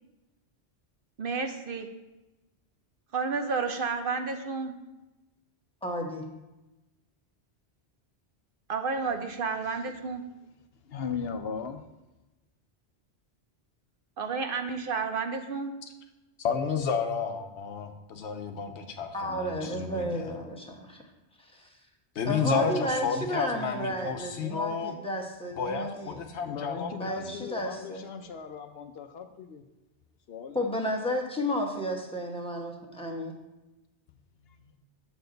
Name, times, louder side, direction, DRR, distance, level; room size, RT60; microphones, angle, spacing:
voice 1, 1.2-1.9 3.1-4.7 8.7-10.2 14.2-15.7, right 4 dB, 60° right, 6 dB, 0.8 m, -31 dB
voice 2, 5.8-6.2 19.1-21.0 21.5-21.7 22.2-26.2 26.9-28.0 30.5-33.3, equal, 5° left, 0 dB, 1.0 m, -32 dB
voice 3, 10.8-11.8 26.4-29.7 30.3-30.8 34.4-34.8, left 6 dB, 70° left, 7 dB, 0.8 m, -38 dB
voice 4, 16.4-20.5 22.1-25.0 25.6-27.3, left 5 dB, 90° left, 5 dB, 1.1 m, -31 dB
7.1 x 6.9 x 3.9 m, 1.0 s
omnidirectional pair, 1.1 m